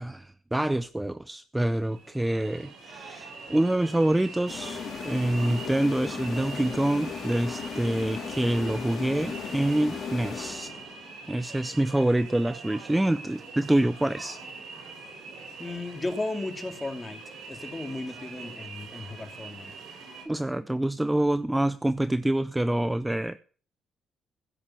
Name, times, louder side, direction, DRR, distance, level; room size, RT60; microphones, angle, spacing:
voice 1, 0.0-10.7 11.3-14.4 20.3-23.4, right 1 dB, 10° right, 0.6 m, -26 dB
sound 1, 1.7-20.2, right 4 dB, 70° right, 6.1 m, -43 dB
sound 2, 4.5-11.1, left 6 dB, 50° left, 4.0 m, -36 dB
voice 2, 15.6-17.2 17.5-19.7, left 2 dB, 20° left, 2.5 m, -35 dB
16.0 x 6.7 x 7.6 m
cardioid pair, 90°, 0 cm